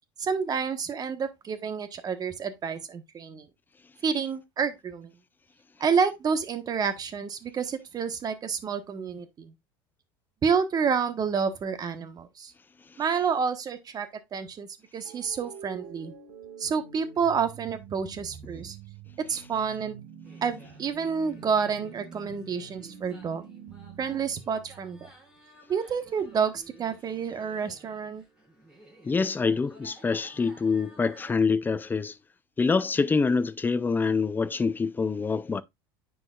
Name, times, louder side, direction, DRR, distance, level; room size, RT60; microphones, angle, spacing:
voice 1, 0.2-3.5 4.0-5.1 5.8-9.5 10.4-12.5 13.0-14.7 14.9-16.1 16.6-18.8 19.3-19.9 20.4-23.4 24.0-25.1 25.7-28.2, right 6 dB, 35° right, 1.2 m, -29 dB
sound 1, 15.0-25.2, right 6 dB, 80° right, 1.5 m, -46 dB
sound 2, 20.2-31.3, right 2 dB, 5° right, 5.4 m, -55 dB
voice 2, 29.0-32.2 32.6-35.6, left 4 dB, 15° left, 0.5 m, -25 dB
9.6 x 4.8 x 2.4 m
supercardioid pair, 110°, 12 cm